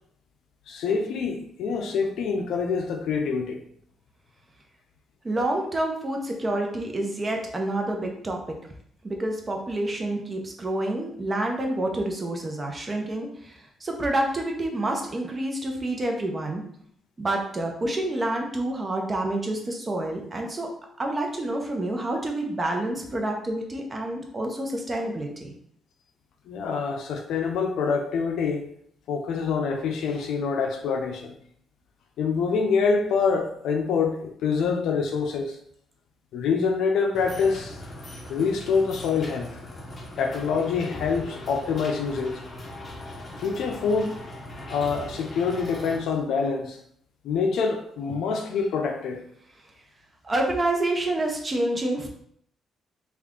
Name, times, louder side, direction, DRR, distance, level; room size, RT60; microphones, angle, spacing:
voice 1, 0.7-3.6 26.5-28.7 29.1-31.4 32.2-35.6 36.3-37.8 38.3-39.6 40.2-42.4 43.4-44.2 44.7-46.8 47.2-49.2, left 5 dB, 80° left, 0.4 m, -26 dB
voice 2, 5.2-8.6 9.0-16.6 17.2-20.7 21.0-25.5 50.2-52.1, right 1 dB, 30° right, 0.8 m, -28 dB
sound 1, 37.1-46.0, left 1 dB, 35° left, 0.7 m, -39 dB
3.3 x 2.4 x 3.7 m
cardioid pair, 90°, 0 cm